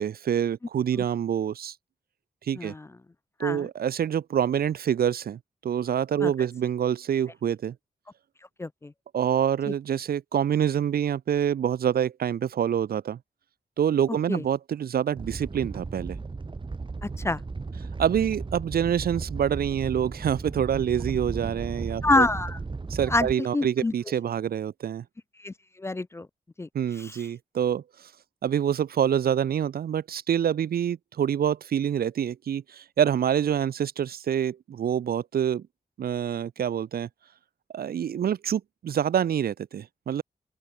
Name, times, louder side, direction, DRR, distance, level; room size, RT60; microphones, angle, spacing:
voice 1, 0.0-1.7 2.4-2.7 3.4-7.7 9.1-13.2 13.8-16.2 18.0-22.3 22.9-25.0 26.7-28.1 28.4-35.6 36.0-37.1 37.7-40.2, right 9 dB, 80° right, 0.6 m, -26 dB
voice 2, 2.6-2.9 3.4-3.7 6.2-6.3 8.6-8.9 14.3-14.4 17.0-17.4 22.0-22.6 23.1-23.3 23.5-23.9 25.4-26.3 26.6-26.7 27.0-27.2, left 2 dB, 15° left, 0.3 m, -26 dB
Animal, 15.2-23.3, right 4 dB, 30° right, 4.5 m, -35 dB
open air
wide cardioid pair, 180°, 16 cm